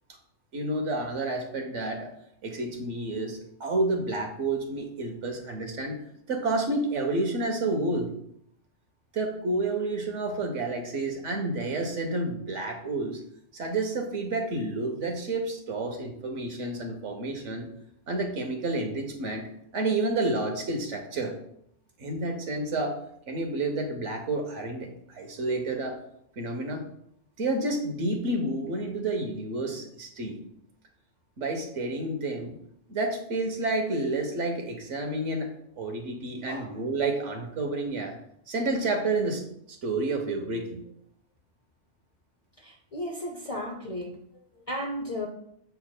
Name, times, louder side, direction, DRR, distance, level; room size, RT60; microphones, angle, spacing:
voice 1, 0.5-2.1 2.4-6.0 6.3-8.1 9.1-13.2 13.5-17.7 18.1-21.4 22.0-23.0 23.3-26.0 26.4-26.9 27.4-30.4 31.4-32.6 32.9-38.2 38.5-39.4 39.7-40.8, right 2 dB, 70° right, 3 dB, 1.3 m, -30 dB
voice 2, 36.5-36.8 42.6-44.2 44.7-45.3, left 1 dB, 40° left, 2 dB, 0.5 m, -34 dB
6.8 x 6.8 x 2.2 m, 0.71 s
omnidirectional pair, 1.3 m